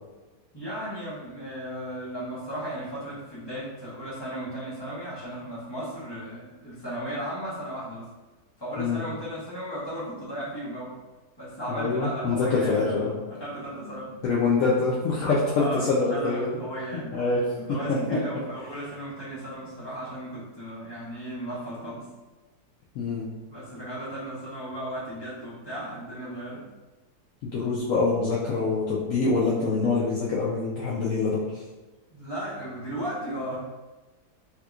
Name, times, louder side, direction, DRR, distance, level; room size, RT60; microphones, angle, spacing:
voice 1, 0.5-8.1 8.6-10.9 11.4-14.1 15.5-17.2 17.6-22.1 23.5-26.6 32.1-33.6, equal, 20° left, -8 dB, 0.9 m, -35 dB
voice 2, 11.7-13.1 14.2-16.6 17.1-17.4 17.9-18.0 22.9-23.3 27.4-31.6, left 4 dB, 70° left, -5 dB, 0.8 m, -25 dB
3.5 x 2.9 x 2.4 m, 1.2 s
omnidirectional pair, 1.7 m